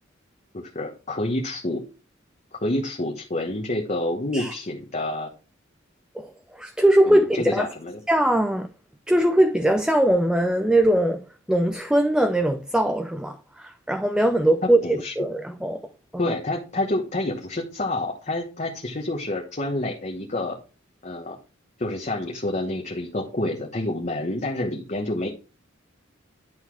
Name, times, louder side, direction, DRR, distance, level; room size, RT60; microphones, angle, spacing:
voice 1, 0.5-1.8 2.5-5.3 7.1-8.0 14.6-15.1 16.2-20.6 21.0-21.4 21.8-25.3, left 1 dB, 35° left, 1.2 m, -28 dB
voice 2, 6.1-7.7 8.1-8.7 9.1-15.8 16.1-16.3, right 1 dB, 5° right, 0.5 m, -21 dB
10.5 x 4.1 x 4.7 m
head